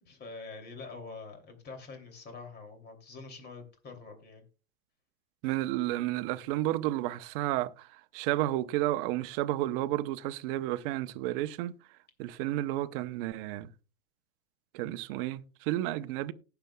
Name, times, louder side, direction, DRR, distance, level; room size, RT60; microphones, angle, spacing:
voice 1, 0.0-4.4, left 4 dB, 25° left, 2.8 m, -45 dB
voice 2, 5.4-11.7 12.2-13.7 14.7-16.3, right 15 dB, 40° right, 0.8 m, -31 dB
19.0 x 6.9 x 2.3 m
hypercardioid pair, 120°, 42 cm